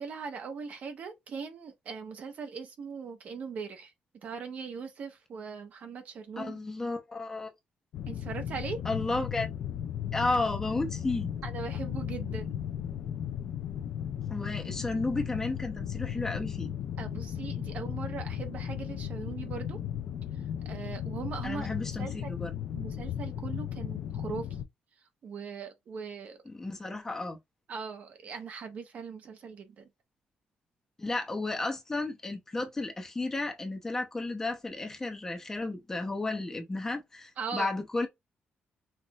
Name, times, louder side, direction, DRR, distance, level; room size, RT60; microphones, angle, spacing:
voice 1, 0.0-3.9 4.2-6.6 8.1-8.8 11.4-12.5 17.0-19.8 20.3-22.3 22.7-24.5 25.2-26.4 27.7-29.9 37.4-37.7, right 5 dB, 50° right, 1.1 m, -40 dB
voice 2, 6.4-7.5 8.8-9.5 10.1-11.3 14.3-16.7 21.4-22.5 26.5-27.4 31.0-38.1, left 2 dB, 15° left, 0.9 m, -33 dB
sound 1, 7.9-24.6, left 9 dB, 65° left, 0.6 m, -36 dB
5.7 x 2.6 x 3.0 m
cardioid pair, 175°, 3 cm